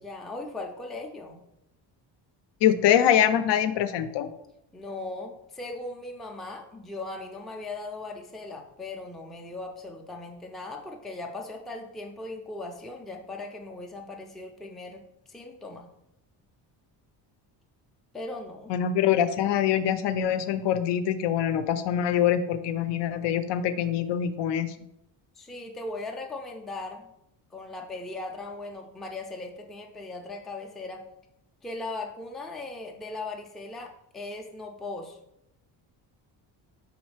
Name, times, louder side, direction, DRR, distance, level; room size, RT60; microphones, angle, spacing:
voice 1, 0.0-1.4 4.7-15.0 15.3-15.9 18.1-18.7 25.3-27.1 27.5-31.0 31.6-35.2, left 2 dB, ahead, 2 dB, 0.3 m, -38 dB
voice 2, 2.6-4.3 18.7-24.7, left 9 dB, 75° left, 10 dB, 0.5 m, -24 dB
5.0 x 3.1 x 3.2 m, 0.80 s
cardioid pair, 115°, 43 cm